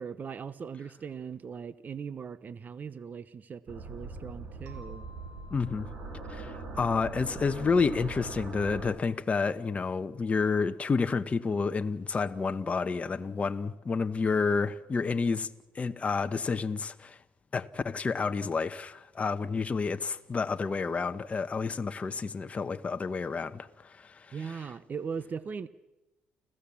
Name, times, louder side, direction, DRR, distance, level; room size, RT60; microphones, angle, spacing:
voice 1, 0.0-5.1 24.3-25.7, right 6 dB, 40° right, 0.9 m, -39 dB
sound 1, 3.7-8.9, right 3 dB, 55° right, 6.3 m, -41 dB
sound 2, 4.7-9.1, left 1 dB, 80° right, 5.0 m, -58 dB
voice 2, 5.5-5.9 6.3-15.5 15.7-17.2 17.5-24.7, left 4 dB, 30° left, 1.0 m, -30 dB
29.5 x 15.5 x 7.3 m
supercardioid pair, 85°, 5 cm